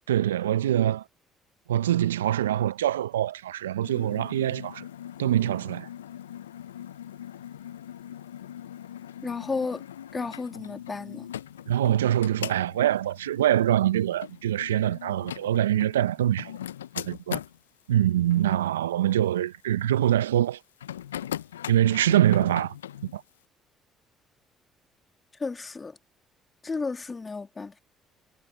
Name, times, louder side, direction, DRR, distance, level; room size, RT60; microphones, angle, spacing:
voice 1, 0.1-1.0 1.7-4.9 5.2-5.9 11.7-16.5 17.0-17.4 17.9-20.6 21.7-22.7 23.1-23.2, right 12 dB, 85° right, 0.7 m, -24 dB
sound 1, 3.8-17.6 18.3-18.7 20.8-23.2, left 10 dB, 85° left, 0.6 m, -40 dB
voice 2, 9.2-9.8 10.1-11.3 25.4-26.0 26.6-27.8, left 4 dB, 30° left, 2.8 m, -33 dB
hypercardioid pair, 50°, 0 cm